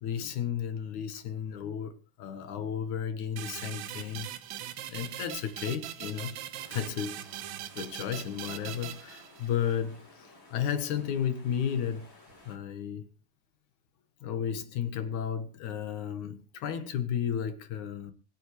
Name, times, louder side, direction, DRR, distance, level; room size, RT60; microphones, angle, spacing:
voice 1, 0.0-4.3 4.9-6.4 6.7-7.2 7.7-12.1 12.5-13.1 14.2-18.1, left 8 dB, 75° left, 2.8 m, -33 dB
sound 1, 3.4-9.7, right 11 dB, 70° right, 2.2 m, -41 dB
sound 2, 6.5-12.6, left 2 dB, 45° left, 6.2 m, -56 dB
25.0 x 8.5 x 3.3 m
omnidirectional pair, 3.6 m